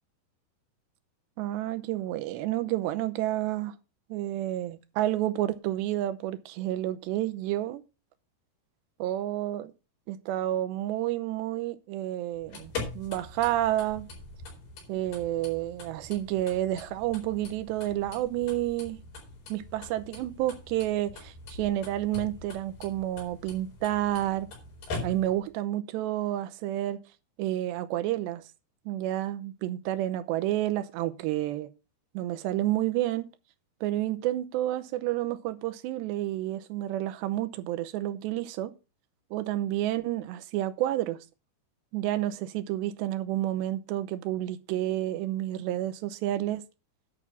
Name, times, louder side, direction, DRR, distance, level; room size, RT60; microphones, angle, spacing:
voice 1, 1.4-3.7 4.1-7.8 9.0-9.7 10.1-14.1 14.9-19.0 19.5-24.5 25.0-27.0 27.4-28.4 28.9-31.7 32.1-33.3 33.8-38.7 39.3-41.2 41.9-46.6, right 14 dB, 85° right, 2.9 m, -30 dB
sound 1, 12.3-25.5, left 3 dB, 60° left, 6.1 m, -43 dB
11.0 x 6.2 x 5.6 m
omnidirectional pair, 5.1 m